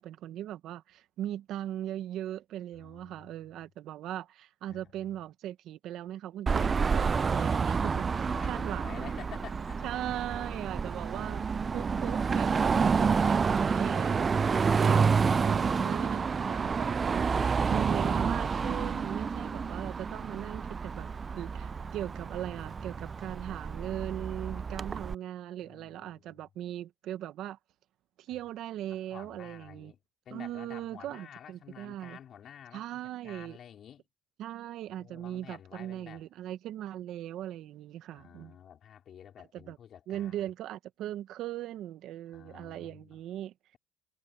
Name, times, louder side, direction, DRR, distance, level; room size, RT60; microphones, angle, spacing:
voice 1, 0.0-9.2 9.8-17.3 17.7-21.1 21.3-27.6 28.2-29.9 30.3-32.2 32.7-33.6 34.4-38.6 39.5-39.8 40.1-43.5, right 12 dB, 70° right, 1.2 m, -39 dB
voice 2, 2.7-3.6 4.7-5.1 6.9-10.0 24.5-24.7 25.6-26.4 28.3-28.4 28.9-30.0 30.2-34.0 35.0-36.2 38.1-40.4 42.3-43.2, left 9 dB, 55° left, 4.5 m, -51 dB
Car passing by / Traffic noise roadway noise / Engine, 6.5-25.1, right 5 dB, 30° right, 0.4 m, -29 dB
cardioid pair, 100°, 0 cm